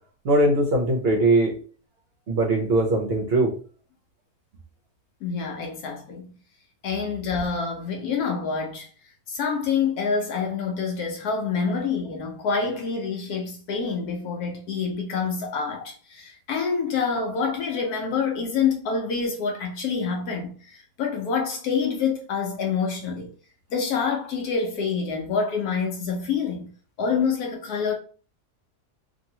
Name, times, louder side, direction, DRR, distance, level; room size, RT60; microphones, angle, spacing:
voice 1, 0.2-1.6 2.3-3.5, right 1 dB, 60° right, 0.6 m, -20 dB
voice 2, 5.2-6.3 6.8-8.9 9.3-23.3 23.7-26.7 27.0-27.9, left 5 dB, 75° left, 1.1 m, -27 dB
2.8 x 2.6 x 2.7 m
omnidirectional pair, 1.7 m